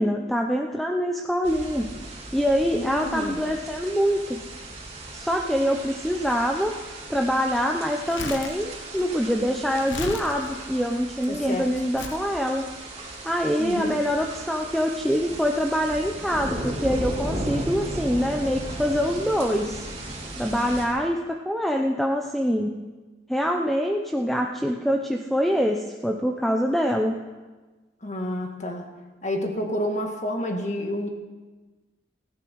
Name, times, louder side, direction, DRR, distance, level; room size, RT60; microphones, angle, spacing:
voice 1, 0.0-1.9 2.3-4.4 5.1-6.7 7.1-12.7 13.2-19.8 20.4-22.8 23.3-27.1, equal, ahead, 2 dB, 0.7 m, -25 dB
sound 1, 1.4-20.9, right 1 dB, 35° right, 3.5 m, -36 dB
voice 2, 2.7-3.4 11.3-11.7 13.6-14.0 28.0-28.9 29.2-31.1, left 1 dB, 40° left, 3 dB, 2.1 m, -29 dB
Crumpling crinkling, 7.9-11.3 12.0-12.3 13.0-13.2, left 4 dB, 80° left, 1.0 m, -36 dB
17.5 x 15.5 x 4.7 m, 1.3 s
head